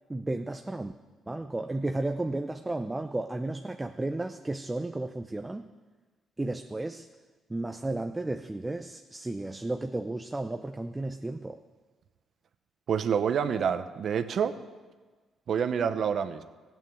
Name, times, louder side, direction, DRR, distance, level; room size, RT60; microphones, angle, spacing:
voice 1, 0.1-0.9 1.3-5.7 6.4-7.1 7.5-11.6, right 2 dB, 15° right, 7 dB, 0.6 m, -33 dB
voice 2, 12.9-14.6 15.5-16.4, right 7 dB, 60° right, 10 dB, 0.9 m, -27 dB
14.0 x 9.1 x 7.6 m, 1.3 s
cardioid pair, 90°, 0 cm